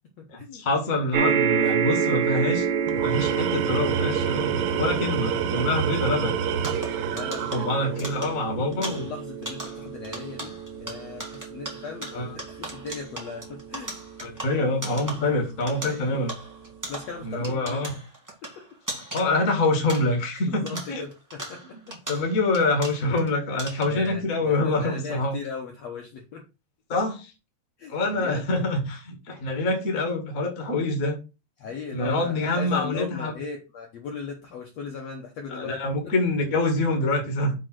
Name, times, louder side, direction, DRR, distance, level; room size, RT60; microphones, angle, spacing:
voice 1, 0.3-2.7 2.9-6.3 7.4-9.1 12.1-12.4 14.2-16.4 17.2-18.0 19.1-21.0 22.1-25.4 26.9-27.3 27.9-31.2 31.9-33.3 35.5-37.5, left 2 dB, 50° left, 3 dB, 1.0 m, -26 dB
sound 1, 1.1-15.7 16.4-16.5 16.8-16.9, right 7 dB, 55° right, 2.4 m, -29 dB
Tools, 2.9-8.2, right 8 dB, 80° right, 3.0 m, -29 dB
sound 2, 6.6-20.4 20.7-23.3 23.6-24.1, right 1 dB, 25° right, 0.3 m, -39 dB
voice 2, 7.0-8.1 8.9-12.2 12.6-13.9 15.9-16.0 16.9-17.9 18.4-18.6 20.5-22.0 23.9-26.4 27.8-28.5 31.6-35.8 36.0-36.1, left 5 dB, 85° left, 2 dB, 1.4 m, -38 dB
7.3 x 4.0 x 6.1 m, 0.29 s
omnidirectional pair, 4.8 m